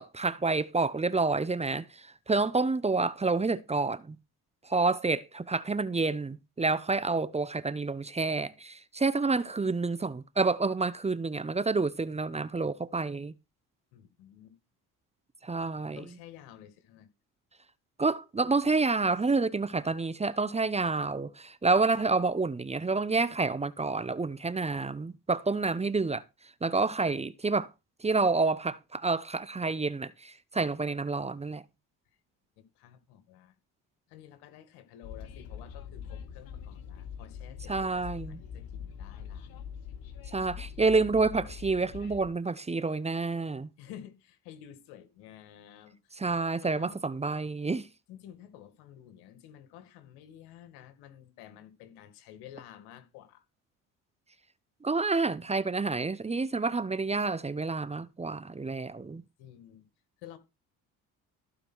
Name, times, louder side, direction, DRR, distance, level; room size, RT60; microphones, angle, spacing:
voice 1, 0.0-4.2 4.6-13.3 15.4-16.0 18.0-26.2 26.6-27.7 28.0-31.6 37.7-38.4 40.3-43.7 46.2-47.9 54.8-59.2, right 3 dB, 15° right, 0.8 m, -29 dB
voice 2, 13.9-14.6 15.8-17.1 32.8-33.5 34.1-39.5 43.8-47.0 48.1-53.4 59.4-59.9 60.2-60.4, left 11 dB, 90° left, 2.1 m, -51 dB
Train, 35.0-42.3, left 8 dB, 65° left, 2.2 m, -43 dB
15.0 x 5.0 x 6.2 m
supercardioid pair, 85°, 37 cm